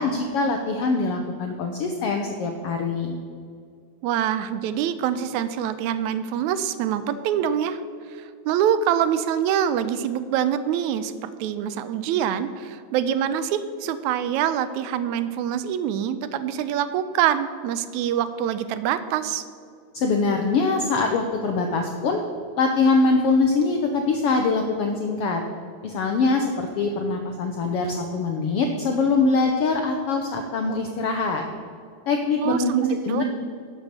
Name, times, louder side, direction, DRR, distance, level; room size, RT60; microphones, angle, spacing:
voice 1, 0.0-3.1 19.9-22.2 22.6-25.4 25.8-31.4 32.1-32.7 33.0-33.2, left 3 dB, 80° left, 4 dB, 1.3 m, -23 dB
voice 2, 4.0-7.8 8.2-19.4 32.4-33.2, right 9 dB, 80° right, 12 dB, 1.9 m, -25 dB
11.5 x 6.3 x 6.8 m, 2.3 s
omnidirectional pair, 3.5 m